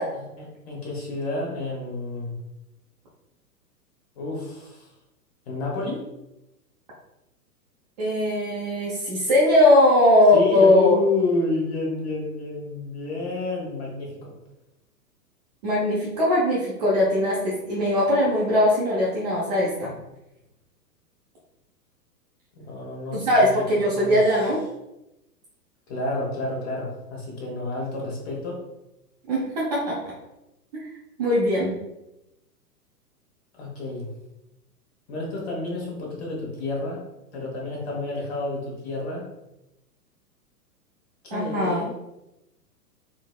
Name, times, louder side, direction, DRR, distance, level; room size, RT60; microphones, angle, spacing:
voice 1, 0.1-2.3 4.2-4.9 5.5-6.0 10.3-14.3 22.5-23.5 23.8-24.4 25.9-28.6 33.5-34.1 35.1-37.0 37.3-39.2 41.2-41.9, left 2 dB, 40° left, -2 dB, 1.1 m, -29 dB
voice 2, 8.0-11.0 15.6-19.9 23.1-24.6 29.3-30.1 30.8-30.9 31.2-31.7 41.3-41.9, left 1 dB, 25° right, -6 dB, 0.5 m, -20 dB
3.9 x 2.0 x 2.3 m, 0.92 s
figure-of-eight pair, 110°, 48 cm